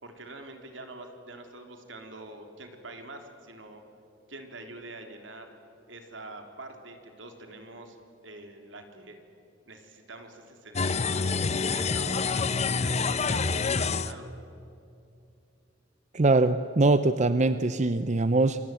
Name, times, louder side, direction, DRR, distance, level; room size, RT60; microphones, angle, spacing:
voice 1, 0.0-3.8 4.3-5.5 5.9-8.0 8.2-9.2 9.7-13.6 13.9-14.4, right 2 dB, 75° right, 5 dB, 3.7 m, -45 dB
sound 1, 10.7-14.1, left 4 dB, 35° left, 0.9 m, -27 dB
voice 2, 16.1-18.6, right 2 dB, 40° right, 12 dB, 0.7 m, -22 dB
28.0 x 23.0 x 9.2 m, 2.7 s
head